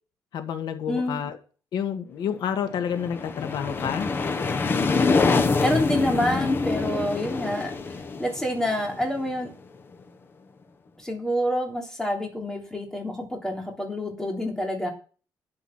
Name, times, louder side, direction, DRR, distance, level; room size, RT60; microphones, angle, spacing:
voice 1, 0.3-1.4 1.7-4.1, left 8 dB, 75° left, 7 dB, 1.8 m, -29 dB
voice 2, 0.9-1.2 5.6-9.5 11.0-14.9, equal, 5° left, 1 dB, 3.5 m, -28 dB
sound 1, 2.7-9.5, left 4 dB, 30° left, 1.2 m, -25 dB
12.5 x 8.3 x 5.9 m, 0.37 s
cardioid pair, 160°, 7 cm